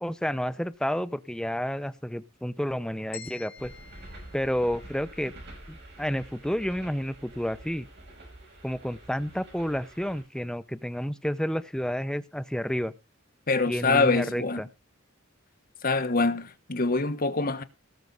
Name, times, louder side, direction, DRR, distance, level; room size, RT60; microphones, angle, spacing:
voice 1, 0.0-3.7 4.3-5.3 5.7-7.9 8.6-12.9 13.7-14.7, equal, 5° left, 0.7 m, -30 dB
sound 1, 3.1-5.3, left 6 dB, 70° left, 4.2 m, -48 dB
sound 2, 3.6-10.2, right 1 dB, 55° right, 5.5 m, -48 dB
voice 2, 13.5-14.6 15.8-17.6, left 3 dB, 45° left, 1.3 m, -25 dB
18.5 x 6.8 x 4.0 m
head